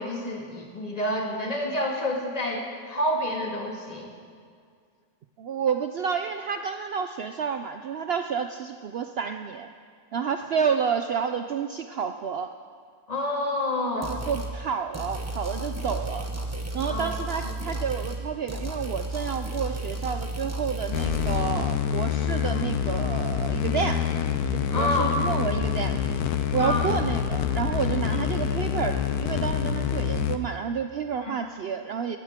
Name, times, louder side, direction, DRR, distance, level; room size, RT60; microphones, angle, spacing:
voice 1, 0.0-4.1 13.1-14.2 16.9-17.1 17.4-17.5 22.5-22.6 24.7-25.1 26.6-26.9 31.2-31.4, left 1 dB, 25° left, -1 dB, 1.9 m, -28 dB
voice 2, 5.4-9.7 10.1-12.5 13.9-16.3 16.7-24.1 24.5-26.0 26.5-32.2, right 7 dB, 80° right, 7 dB, 0.5 m, -30 dB
sound 1, 14.0-14.5 14.9-18.2 18.5-21.4, right 1 dB, 10° right, 0.9 m, -33 dB
sound 2, 20.9-30.4, left 8 dB, 80° left, 1.2 m, -26 dB
19.0 x 14.0 x 3.6 m, 2.1 s
omnidirectional pair, 1.6 m